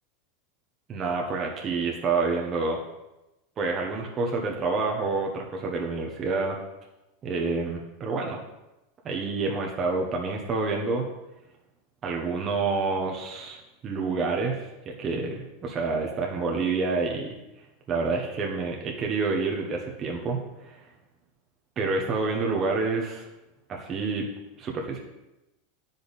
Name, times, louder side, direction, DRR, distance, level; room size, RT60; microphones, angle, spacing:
voice 1, 0.9-2.8 3.6-6.6 7.2-8.4 9.0-11.1 12.0-17.3 17.9-20.8 21.8-23.3 23.7-24.3 24.6-25.0, right 4 dB, 25° right, 0 dB, 1.1 m, -28 dB
10.0 x 5.3 x 4.1 m, 0.97 s
supercardioid pair, 145°, 0 cm